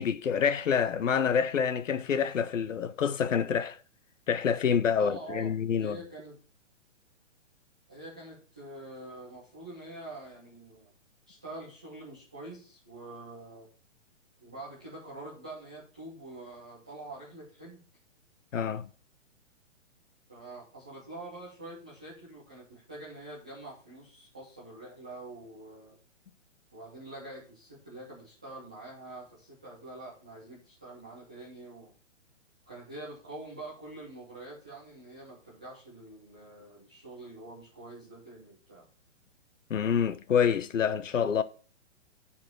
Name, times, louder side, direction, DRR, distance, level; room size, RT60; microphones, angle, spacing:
voice 1, 0.0-3.8 4.3-6.0 18.5-18.9 39.7-41.4, left 7 dB, 85° left, 0.8 m, -27 dB
voice 2, 4.9-6.4 7.9-10.9 11.3-13.7 14.4-17.8 20.3-26.0 26.7-31.9 32.7-38.9, right 2 dB, 5° right, 0.3 m, -45 dB
6.7 x 4.2 x 6.3 m
hypercardioid pair, 140°, 37 cm